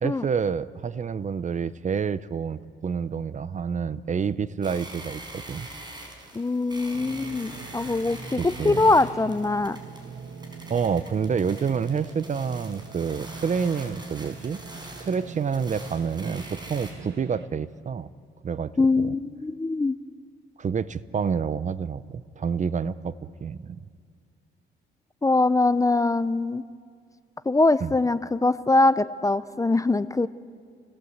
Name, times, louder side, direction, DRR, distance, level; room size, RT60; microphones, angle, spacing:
voice 1, 0.0-5.7 8.4-8.9 10.7-18.1 18.4-19.1 20.6-23.8 27.8-27.9, right 6 dB, 40° right, 16 dB, 0.7 m, -28 dB
sound 1, 4.6-16.9, right 1 dB, 20° right, 5.4 m, -44 dB
voice 2, 6.3-9.8 18.8-20.0 25.2-26.6 27.5-30.3, left 2 dB, 15° left, 14 dB, 0.6 m, -22 dB
sound 2, 6.9-17.5, right 5 dB, 60° right, 1.9 m, -42 dB
27.5 x 18.0 x 8.0 m, 2.2 s
cardioid pair, 90°, 20 cm